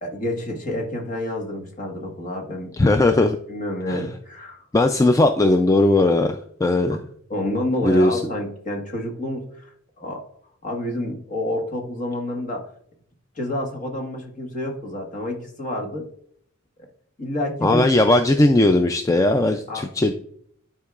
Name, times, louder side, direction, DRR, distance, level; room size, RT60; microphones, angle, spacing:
voice 1, 0.0-2.8 3.5-4.7 6.9-7.0 7.3-9.7 10.0-10.2 10.6-12.7 13.3-16.1 17.2-17.9 19.7-19.8, left 1 dB, 40° left, 1 dB, 1.4 m, -29 dB
voice 2, 2.8-3.4 3.9-4.0 4.7-7.0 7.8-8.2 17.6-20.1, left 2 dB, 15° left, 6 dB, 0.3 m, -18 dB
11.5 x 4.5 x 2.4 m, 0.66 s
head